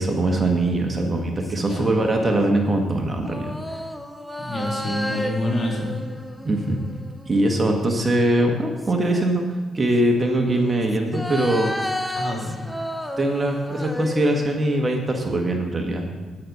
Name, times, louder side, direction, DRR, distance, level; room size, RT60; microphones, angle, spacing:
voice 1, 0.0-3.6 6.4-6.8 7.2-9.4 9.7-11.7 13.2-16.1, right 1 dB, 25° right, 2 dB, 1.4 m, -22 dB
sound 1, 1.1-2.3 3.2-7.7 8.4-9.6 10.5-15.1 15.5-15.6, equal, ahead, 0.8 m, -33 dB
voice 2, 1.7-2.0 4.4-6.0 12.1-12.7, left 1 dB, 40° left, -1 dB, 2.6 m, -27 dB
9.2 x 7.6 x 5.4 m, 1.3 s
cardioid pair, 90°, 0 cm